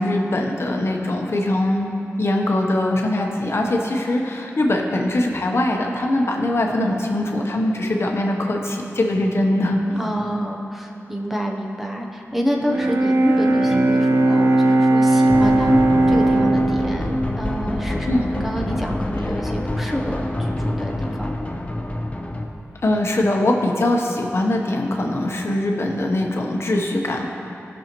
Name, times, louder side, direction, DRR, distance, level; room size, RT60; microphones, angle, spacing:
voice 1, 0.0-1.9 2.2-10.0 18.0-18.2 22.8-27.3, left 1 dB, 60° left, 1 dB, 0.9 m, -22 dB
voice 2, 9.9-15.8 16.1-21.3, equal, 5° right, 0 dB, 0.8 m, -28 dB
Bowed string instrument, 12.6-18.6, right 2 dB, 65° right, 0.5 m, -18 dB
sound 1, 15.3-22.5, left 1 dB, 25° left, 0.8 m, -26 dB
16.5 x 6.3 x 3.0 m, 2.7 s
wide cardioid pair, 85°, 5 cm